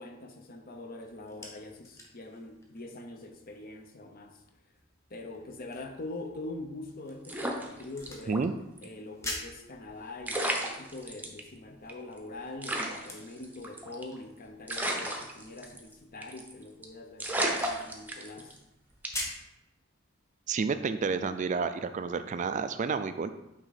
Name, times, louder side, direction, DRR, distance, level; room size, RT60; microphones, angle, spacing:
voice 1, 0.0-4.4 5.1-8.4 8.8-18.6, left 2 dB, 45° left, 4 dB, 0.9 m, -43 dB
sound 1, 1.0-19.5, left 1 dB, 15° left, 1.2 m, -47 dB
sound 2, 7.2-8.4 8.8-8.9 9.9-10.0 10.2-11.4 11.9-12.0 12.2-12.3 12.6-14.2 14.7-15.9 16.2-16.5 16.8-16.9 17.2-18.6 19.0-19.4, right 1 dB, 10° right, 0.8 m, -33 dB
voice 2, 20.5-23.3, right 5 dB, 35° right, 10 dB, 0.3 m, -30 dB
8.9 x 3.6 x 4.1 m, 0.91 s
head